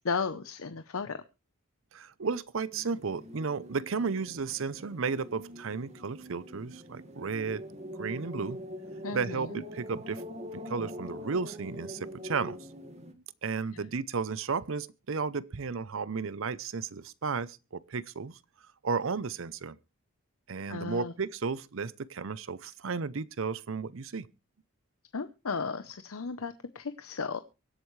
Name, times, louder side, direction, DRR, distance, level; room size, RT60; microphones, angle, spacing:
voice 1, 0.0-1.2 9.0-9.6 13.7-13.8 20.7-21.1 25.1-27.4, left 5 dB, 75° left, 0.8 m, -35 dB
voice 2, 1.9-7.6 8.0-8.6 9.1-10.2 10.5-12.6 13.4-18.4 18.8-19.8 20.5-24.3, right 5 dB, 65° right, 0.6 m, -33 dB
sound 1, 2.7-13.1, equal, 30° right, 1.7 m, -43 dB
24.0 x 8.1 x 3.2 m
head